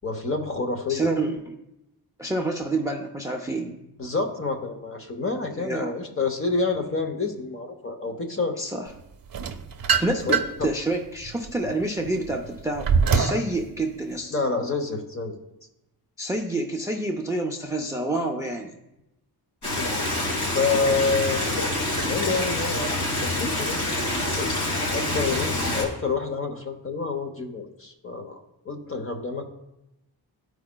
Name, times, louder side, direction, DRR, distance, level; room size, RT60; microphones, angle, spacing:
voice 1, 0.0-1.1 4.0-8.6 10.3-10.7 14.3-15.3 19.7-19.9 20.5-21.4 22.1-22.9 23.2-23.8 24.3-24.5 24.9-28.3 28.6-29.5, left 4 dB, 35° left, 5 dB, 0.8 m, -28 dB
voice 2, 0.9-1.6 2.2-3.7 5.5-5.9 8.6-8.9 9.9-14.3 16.2-18.8, right 2 dB, 10° right, 4 dB, 0.4 m, -28 dB
sound 1, 9.3-10.7 11.2-13.5, right 6 dB, 60° right, 0.6 m, -24 dB
Stream, 19.6-25.8, left 1 dB, 75° left, 2.6 m, -26 dB
14.0 x 4.7 x 2.2 m, 0.90 s
wide cardioid pair, 160°, 40 cm